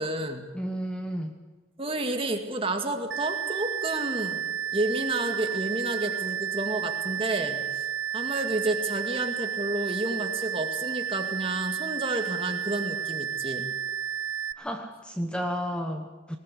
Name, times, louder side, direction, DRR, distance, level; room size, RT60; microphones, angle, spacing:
voice 1, 0.0-0.5 1.8-4.4 4.7-7.7 8.1-13.7, right 2 dB, 30° right, 4 dB, 2.2 m, -30 dB
voice 2, 0.5-1.4 14.6-16.4, equal, 5° left, 5 dB, 1.1 m, -32 dB
sound 1, 3.1-14.5, right 8 dB, 75° right, 0.9 m, -32 dB
20.0 x 18.5 x 8.4 m, 1.2 s
head